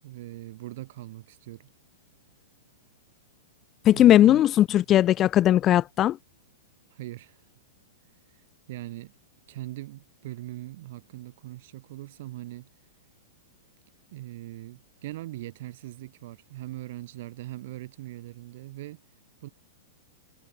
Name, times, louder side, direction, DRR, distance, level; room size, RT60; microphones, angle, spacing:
voice 1, 0.0-1.7 3.9-4.4 6.9-7.4 8.7-9.1 9.5-12.7 14.1-19.0 19.4-19.5, right 16 dB, 60° right, 6.6 m, -40 dB
voice 2, 3.9-6.2, left 12 dB, 30° left, 0.4 m, -18 dB
hypercardioid pair, 120°, 0 cm